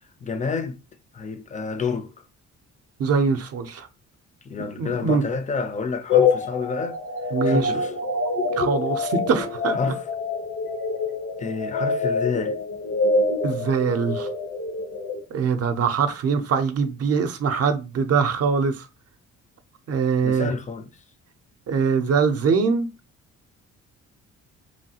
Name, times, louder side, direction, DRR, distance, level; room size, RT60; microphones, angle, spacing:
voice 1, 0.2-0.8 1.1-2.1 4.4-7.0 7.4-7.9 9.7-10.0 11.4-12.6 20.2-20.9, left 5 dB, 25° left, 0.4 m, -29 dB
voice 2, 3.0-3.9 4.8-5.2 7.3-7.7 8.5-9.9 13.4-14.3 15.3-18.9 19.9-20.5 21.7-22.9, right 5 dB, 55° right, 0.5 m, -23 dB
sound 1, 6.1-15.2, left 4 dB, 85° left, 1.0 m, -25 dB
3.1 x 2.3 x 2.8 m
cardioid pair, 90°, 30 cm